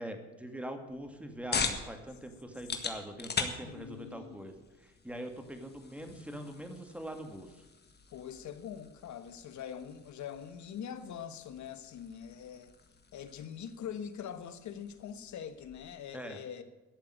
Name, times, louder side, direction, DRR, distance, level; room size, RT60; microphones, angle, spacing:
voice 1, 0.0-7.6 16.1-16.4, right 1 dB, 5° right, 2.0 m, -43 dB
sound 1, 0.9-16.0, left 4 dB, 35° left, 1.8 m, -42 dB
voice 2, 3.6-4.4 8.1-12.7 13.1-16.6, left 8 dB, 70° left, 1.3 m, -43 dB
12.5 x 6.8 x 9.8 m
cardioid pair, 90°, 30 cm